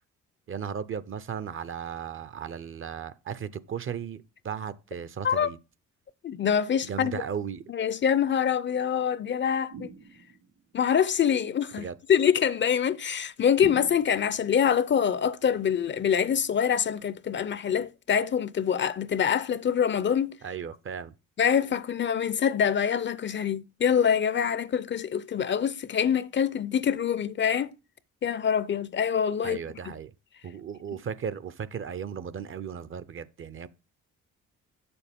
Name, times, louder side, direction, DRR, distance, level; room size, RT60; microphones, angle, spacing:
voice 1, 0.5-5.6 6.8-7.6 11.8-11.9 20.4-21.1 29.4-30.1 30.4-33.7, right 7 dB, 45° right, 0.6 m, -36 dB
voice 2, 6.2-7.2 7.7-9.9 10.7-20.4 21.4-27.7 28.2-29.6, left 8 dB, 40° left, 0.5 m, -25 dB
sound 1, 9.7-10.6 13.6-14.5, right 6 dB, 75° right, 4.4 m, -43 dB
7.6 x 6.9 x 3.5 m
cardioid pair, 90°, 30 cm